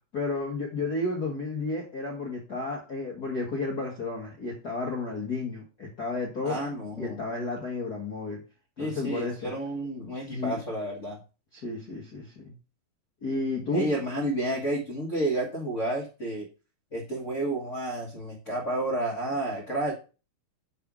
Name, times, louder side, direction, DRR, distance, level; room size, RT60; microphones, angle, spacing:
voice 1, 0.1-6.6 7.0-8.4 8.8-9.5 10.3-10.6 11.5-12.5 13.2-13.9, left 3 dB, 50° left, -2 dB, 1.2 m, -32 dB
voice 2, 6.4-7.2 8.8-11.2 13.7-16.5 16.9-19.9, right 1 dB, 70° left, -1 dB, 0.7 m, -30 dB
8.0 x 5.2 x 6.0 m, 0.34 s
omnidirectional pair, 4.0 m